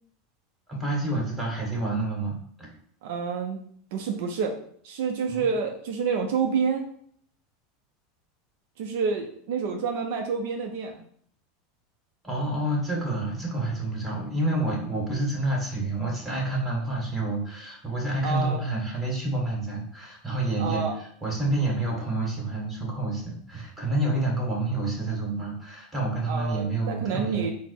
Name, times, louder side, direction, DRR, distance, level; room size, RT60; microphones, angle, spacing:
voice 1, 0.7-2.7 5.3-5.4 12.2-27.5, right 2 dB, 10° right, -2 dB, 1.7 m, -28 dB
voice 2, 3.0-3.6 3.9-4.6 4.8-6.9 8.8-11.0 18.2-18.6 20.6-20.9 26.3-27.5, right 5 dB, 70° right, 3 dB, 0.4 m, -28 dB
4.2 x 2.0 x 4.3 m, 0.62 s
hypercardioid pair, 95°, 0 cm